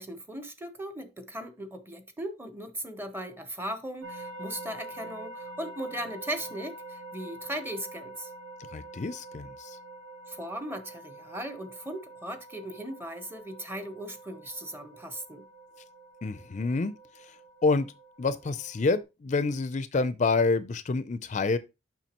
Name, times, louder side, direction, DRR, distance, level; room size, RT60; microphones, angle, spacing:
voice 1, 0.0-8.3 10.3-15.5, right 1 dB, 10° right, 0.8 m, -38 dB
sound 1, 4.0-19.0, right 2 dB, 75° right, 0.9 m, -46 dB
voice 2, 8.7-9.8 16.2-16.9 17.6-17.9 18.2-21.6, left 3 dB, 40° left, 0.4 m, -27 dB
7.1 x 5.8 x 2.9 m
head